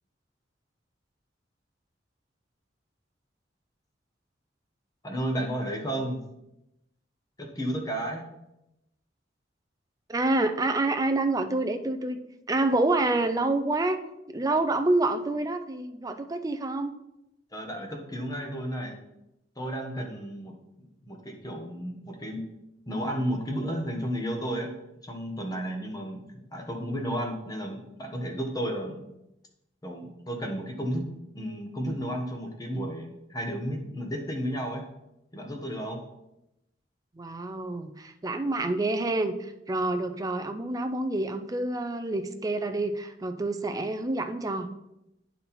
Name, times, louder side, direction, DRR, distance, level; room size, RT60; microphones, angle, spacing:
voice 1, 5.0-6.2 7.4-8.3 17.5-18.9 19.6-20.5 21.0-22.5 22.9-24.7 25.0-29.0 29.8-34.8 35.3-36.0, equal, 20° left, 2 dB, 1.2 m, -33 dB
voice 2, 10.1-12.2 12.5-14.0 14.3-16.9 37.2-44.7, right 2 dB, 20° right, 8 dB, 0.4 m, -27 dB
9.5 x 4.2 x 4.2 m, 0.89 s
head